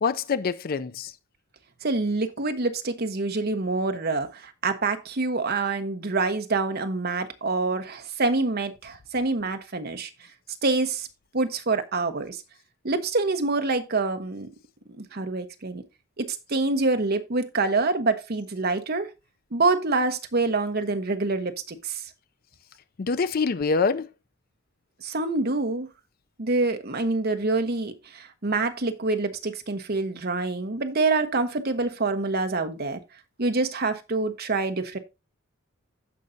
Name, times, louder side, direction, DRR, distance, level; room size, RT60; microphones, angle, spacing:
voice 1, 0.0-1.1 23.0-24.1, left 5 dB, 45° left, 0.4 m, -25 dB
voice 2, 1.8-10.1 10.6-11.1 11.3-12.4 12.8-14.5 14.9-15.8 16.2-19.1 19.5-22.0 25.0-25.9 26.4-33.0 33.4-35.0, right 3 dB, 45° right, 1.0 m, -26 dB
15.5 x 5.4 x 2.7 m
head